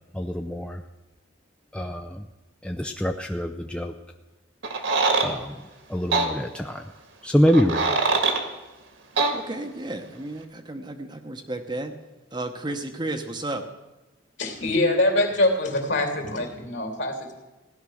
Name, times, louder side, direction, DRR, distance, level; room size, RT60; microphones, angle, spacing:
voice 1, 0.1-0.8 1.7-2.2 2.6-3.9 5.2-5.6 5.9-6.8 7.2-8.0, equal, 5° left, 5 dB, 0.4 m, -25 dB
sound 1, 4.6-5.3 6.1-6.3 7.5-8.4 9.2-9.3, right 3 dB, 65° right, 1.8 m, -22 dB
voice 2, 9.3-10.8 11.3-11.9 12.3-13.6, right 2 dB, 20° right, 5 dB, 0.9 m, -32 dB
voice 3, 14.4-17.3, left 1 dB, 60° left, 4 dB, 2.9 m, -24 dB
16.0 x 10.5 x 6.4 m, 1.1 s
head